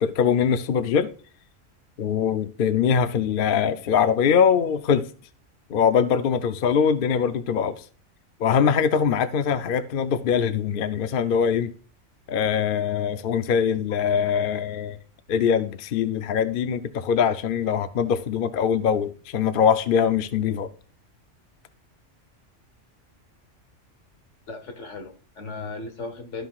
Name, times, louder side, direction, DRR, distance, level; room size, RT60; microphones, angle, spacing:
voice 1, 0.0-1.1 2.0-5.1 5.7-7.8 8.4-11.7 12.3-15.0 15.3-20.7, left 7 dB, 55° left, 0.7 m, -22 dB
voice 2, 24.5-26.5, left 3 dB, 75° left, 1.7 m, -36 dB
13.5 x 5.6 x 2.3 m
omnidirectional pair, 1.3 m